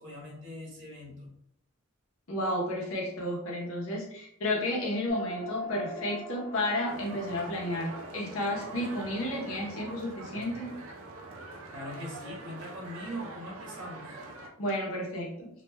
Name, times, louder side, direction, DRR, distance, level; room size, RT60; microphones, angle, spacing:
voice 1, 0.0-1.3 11.7-14.1, equal, 60° right, -3 dB, 1.1 m, -41 dB
voice 2, 2.3-10.8 14.6-15.5, left 1 dB, 80° left, -1 dB, 0.8 m, -32 dB
sound 1, 5.1-9.8, equal, 30° left, 0.5 m, -42 dB
sound 2, 6.9-14.5, right 2 dB, 85° right, 0.5 m, -44 dB
3.2 x 2.3 x 2.2 m, 0.73 s
head